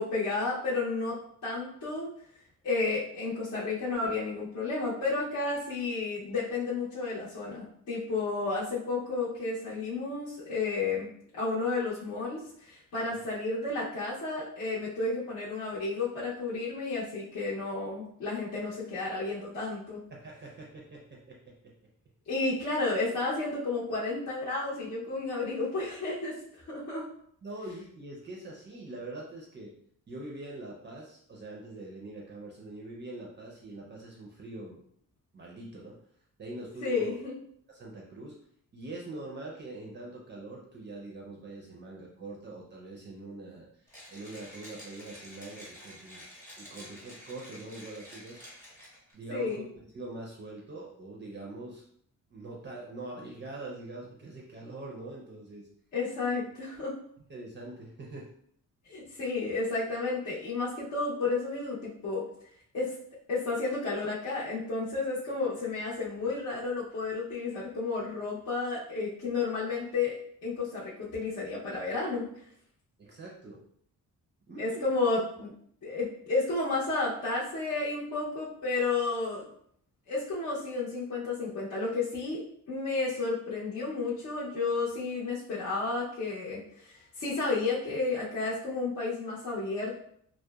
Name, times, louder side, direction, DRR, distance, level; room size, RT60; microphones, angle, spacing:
voice 1, 0.0-2.1 2.6-20.0 22.3-26.4 26.7-27.0 36.8-37.3 49.3-49.6 55.9-56.9 58.9-62.3 62.7-62.9 63.3-72.3 74.6-75.5 75.8-79.5 80.1-82.4 82.7-90.0, left 3 dB, 55° left, -9 dB, 0.7 m, -32 dB
voice 2, 20.1-21.5 27.4-29.7 30.1-34.8 35.3-36.0 36.4-37.2 37.7-38.4 38.7-48.4 49.1-51.8 52.3-55.7 57.3-58.3 73.0-73.6 74.5-74.9, right 2 dB, 35° right, -3 dB, 0.4 m, -43 dB
Mechanisms, 43.9-49.1, equal, 5° left, 0.7 m, -49 dB
2.8 x 2.0 x 2.2 m, 0.65 s
wide cardioid pair, 170°, 32 cm